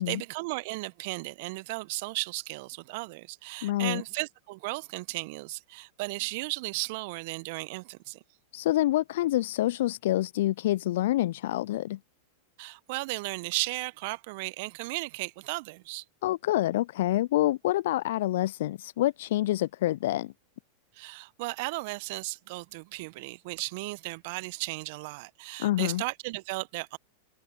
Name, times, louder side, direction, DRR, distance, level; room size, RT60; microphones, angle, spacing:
voice 1, 0.0-8.2 12.6-16.0 20.9-27.0, right 25 dB, 55° right, 1.1 m, -35 dB
voice 2, 3.6-4.0 8.5-12.0 16.2-20.3 25.6-26.0, left 15 dB, 60° left, 0.3 m, -27 dB
figure-of-eight pair, 90°, 0 cm